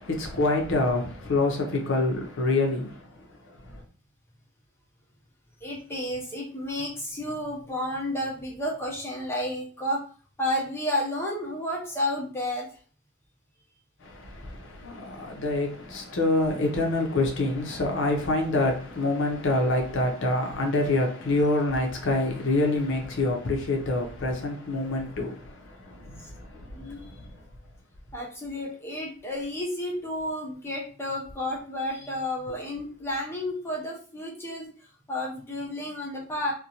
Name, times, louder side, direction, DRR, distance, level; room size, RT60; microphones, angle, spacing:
voice 1, 0.0-3.2 3.6-3.8 14.0-27.3, left 2 dB, 55° left, 0.6 m, -26 dB
voice 2, 5.6-10.0 10.4-12.7 26.7-27.1 28.1-34.7 35.1-36.5, left 1 dB, 10° left, 0.6 m, -31 dB
2.5 x 2.1 x 2.8 m
head